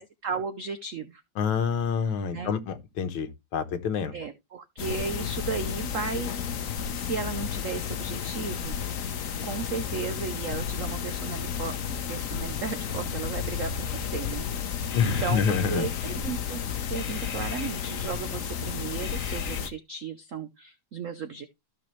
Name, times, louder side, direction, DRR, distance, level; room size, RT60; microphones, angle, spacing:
voice 1, 0.0-1.2 2.3-2.5 4.1-6.3 6.9-8.8 9.4-14.7 15.0-16.6 16.9-21.5, right 6 dB, 75° right, 0.7 m, -35 dB
voice 2, 1.4-4.2 14.9-15.9, left 7 dB, 75° left, 1.9 m, -27 dB
sound 1, 4.8-19.7, left 8 dB, 55° left, 1.0 m, -32 dB
sound 2, 13.8-14.5 14.9-16.5 16.9-18.6 19.0-19.6, left 5 dB, 35° left, 0.9 m, -44 dB
15.0 x 5.1 x 3.1 m
omnidirectional pair, 2.3 m